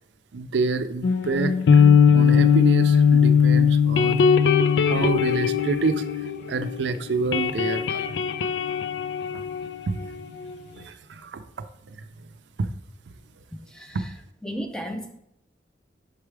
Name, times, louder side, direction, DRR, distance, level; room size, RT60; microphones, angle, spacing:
voice 1, 0.3-1.8 2.1-4.3 4.9-6.0 6.5-8.0 9.9-10.0 10.3-10.4 10.8-11.4 11.9-12.3 12.6-12.7 13.9-14.0, right 3 dB, 80° right, 10 dB, 0.5 m, -27 dB
sound 1, 1.0-6.8 7.1-10.6, left 6 dB, 80° left, 0.3 m, -20 dB
voice 2, 13.7-14.1 14.4-15.2, equal, 5° left, 4 dB, 0.6 m, -34 dB
6.6 x 4.7 x 3.3 m, 0.79 s
head